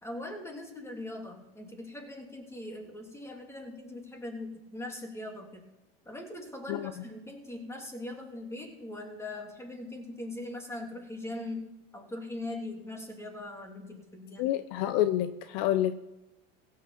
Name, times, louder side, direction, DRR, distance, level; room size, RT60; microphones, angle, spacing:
voice 1, 0.0-5.7 6.0-14.5, left 1 dB, 10° left, 2 dB, 3.1 m, -41 dB
voice 2, 14.4-15.9, left 13 dB, 60° left, 12 dB, 0.8 m, -28 dB
16.0 x 6.7 x 7.2 m, 0.98 s
supercardioid pair, 110°, 31 cm